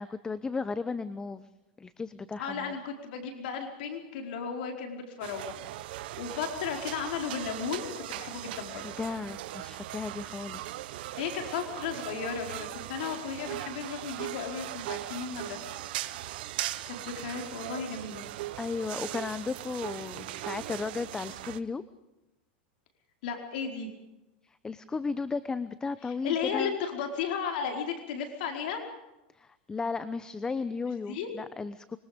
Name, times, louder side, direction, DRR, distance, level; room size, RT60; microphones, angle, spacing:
voice 1, 0.0-1.5 1.8-2.7 9.0-10.8 18.6-21.8 24.6-26.8 29.4-32.0, left 4 dB, 15° left, 14 dB, 0.9 m, -35 dB
voice 2, 2.4-5.5 6.2-9.0 11.2-15.6 16.9-18.2 23.2-23.9 26.0-28.8 31.0-31.3, left 6 dB, 70° left, 3 dB, 4.8 m, -34 dB
sound 1, 5.2-21.6, right 15 dB, 70° right, 1.3 m, -39 dB
25.5 x 24.0 x 5.3 m, 0.97 s
supercardioid pair, 130°, 5 cm